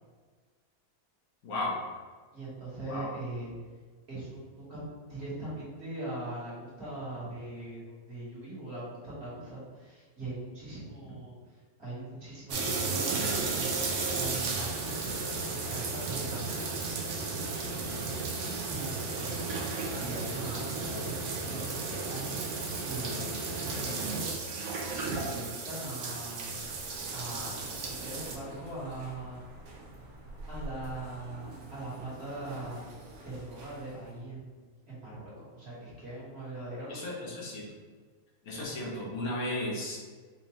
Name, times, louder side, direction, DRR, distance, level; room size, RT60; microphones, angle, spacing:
voice 1, 1.4-1.8 2.9-3.1 36.9-37.6 38.4-40.0, left 1 dB, 85° left, -4 dB, 1.5 m, -34 dB
voice 2, 2.3-3.5 4.1-16.9 17.8-22.6 22.9-24.4 25.0-26.6 27.1-29.4 30.5-32.9 33.2-37.3, right 2 dB, 50° right, -8 dB, 1.7 m, -41 dB
sound 1, 12.5-28.3, right 4 dB, 65° right, 0.9 m, -34 dB
sound 2, 26.5-34.2, right 2 dB, 90° right, 1.3 m, -47 dB
4.4 x 2.7 x 3.0 m, 1.5 s
omnidirectional pair, 1.5 m